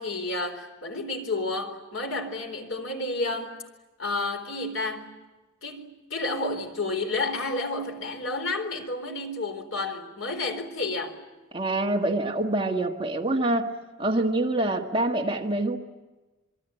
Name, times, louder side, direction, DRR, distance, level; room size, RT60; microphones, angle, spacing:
voice 1, 0.0-3.6 4.0-5.2 5.6-11.2, left 2 dB, 75° left, 4.0 m, -31 dB
voice 2, 11.5-13.7 14.0-15.8, right 2 dB, 25° right, 1.6 m, -25 dB
27.0 x 23.0 x 9.0 m
head